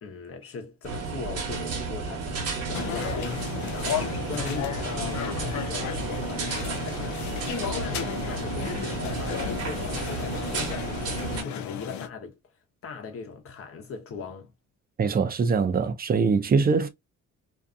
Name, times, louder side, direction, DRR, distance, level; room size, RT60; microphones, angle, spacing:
voice 1, 0.0-7.2 7.5-12.4 12.8-14.5, left 5 dB, 50° left, 0.9 m, -39 dB
sound 1, 0.8-11.4, right 4 dB, 55° right, 1.1 m, -32 dB
sound 2, 2.7-12.1, left 9 dB, 70° left, 0.5 m, -34 dB
voice 2, 15.0-16.9, right 5 dB, 30° right, 0.5 m, -23 dB
2.7 x 2.4 x 2.4 m
cardioid pair, 90°, 30 cm